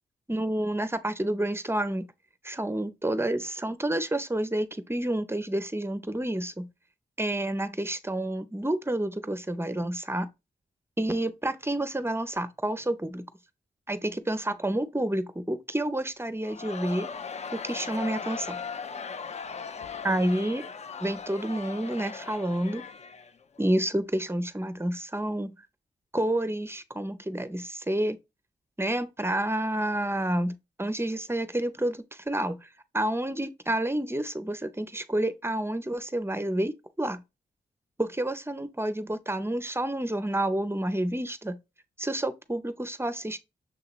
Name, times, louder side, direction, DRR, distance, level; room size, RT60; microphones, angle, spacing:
voice 1, 0.3-2.0 2.4-6.7 7.2-10.3 11.0-13.3 13.9-17.1 17.5-18.6 20.0-20.7 21.0-22.8 23.6-25.6 26.1-28.2 28.8-32.7 32.9-37.2 38.0-41.6 42.0-43.4, right 1 dB, 15° right, 0.6 m, -29 dB
Crowd, 16.4-23.7, left 5 dB, 40° left, 0.4 m, -38 dB
6.6 x 2.8 x 2.3 m
cardioid pair, 45°, 18 cm